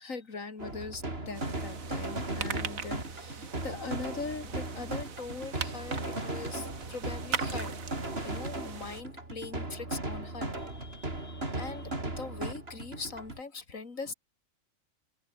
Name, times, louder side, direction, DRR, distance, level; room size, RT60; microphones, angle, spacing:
voice 1, 0.0-7.8 8.2-14.1, left 4 dB, 75° left, 3.1 m, -41 dB
sound 1, 0.6-13.4, right 2 dB, 45° right, 4.9 m, -37 dB
sound 2, 1.3-9.0, right 7 dB, 85° right, 1.9 m, -41 dB
omnidirectional pair, 1.4 m